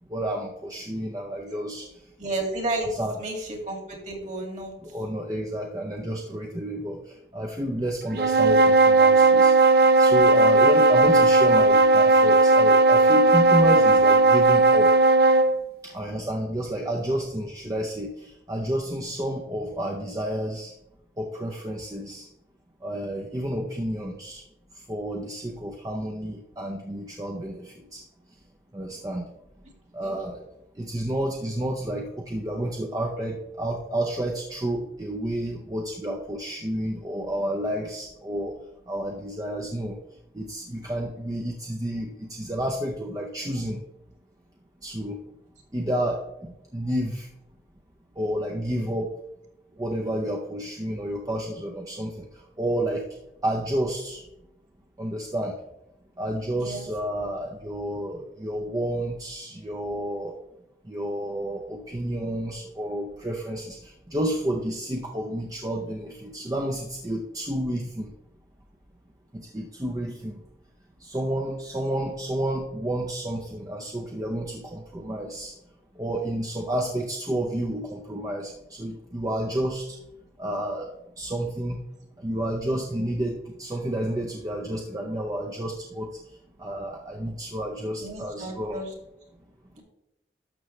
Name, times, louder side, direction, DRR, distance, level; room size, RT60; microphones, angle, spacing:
voice 1, 0.1-1.9 3.0-3.1 4.8-7.0 7.3-9.5 10.0-14.9 15.8-20.7 21.2-22.3 22.8-24.4 24.9-28.0 28.7-29.2 29.9-30.4 30.8-38.5 38.9-40.0 40.3-43.8 44.8-45.2 45.7-47.3 48.2-49.1 49.8-52.3 52.6-53.0 53.4-54.2 55.0-55.6 56.2-60.3 60.9-68.1 69.3-70.4 71.0-75.5 76.0-80.0 80.4-80.9 81.2-81.8 82.2-86.1 86.6-88.8, right 1 dB, 20° right, 1 dB, 0.6 m, -30 dB
voice 2, 2.2-4.7 30.0-30.2 56.6-56.9 88.0-88.9, right 2 dB, 40° right, 1 dB, 2.3 m, -32 dB
sound 1, 8.1-15.5, right 3 dB, 60° right, 0.6 m, -17 dB
12.0 x 6.5 x 3.2 m, 0.88 s
head